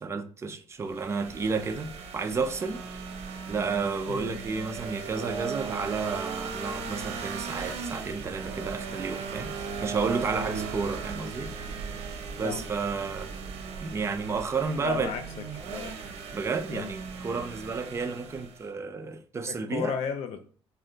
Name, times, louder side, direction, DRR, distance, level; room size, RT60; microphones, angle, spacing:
voice 1, 0.0-2.8 3.5-11.5 12.4-13.3 13.8-15.2 16.3-20.0, right 4 dB, 25° right, 0.5 m, -31 dB
sound 1, 0.8-18.7, right 5 dB, 85° right, 0.7 m, -37 dB
voice 2, 4.1-4.4 10.3-10.6 12.4-12.7 14.8-15.2 15.5-16.0 16.7-16.9 19.5-20.5, left 7 dB, 85° left, 0.6 m, -34 dB
4.3 x 2.2 x 3.8 m
cardioid pair, 140°, 10 cm